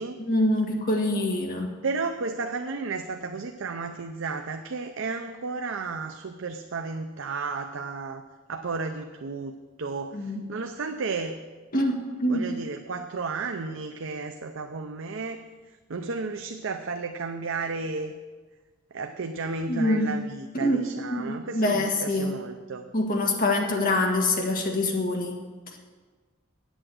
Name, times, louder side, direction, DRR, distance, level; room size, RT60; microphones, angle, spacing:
voice 1, 0.2-1.7 10.1-10.4 11.7-12.5 19.7-20.1 20.5-20.8 21.1-22.3 22.9-25.4, left 1 dB, 45° left, 1 dB, 1.7 m, -25 dB
voice 2, 1.8-8.2 8.5-11.4 12.3-15.4 15.9-18.1 18.9-22.9, right 4 dB, 65° right, 6 dB, 0.6 m, -33 dB
8.9 x 8.1 x 7.8 m, 1.4 s
head